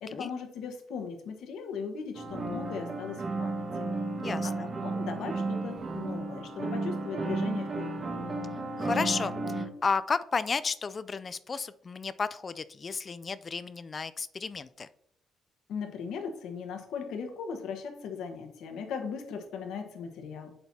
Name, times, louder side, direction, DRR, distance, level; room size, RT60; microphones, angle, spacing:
voice 1, 0.0-3.6 4.4-8.0 15.7-20.5, left 6 dB, 75° left, 5 dB, 1.3 m, -38 dB
sound 1, 2.1-9.7, right 2 dB, 40° right, 1.7 m, -33 dB
voice 2, 4.2-4.7 8.8-14.9, left 5 dB, 40° left, 14 dB, 0.4 m, -33 dB
7.8 x 7.0 x 2.8 m, 0.75 s
supercardioid pair, 60°, 0 cm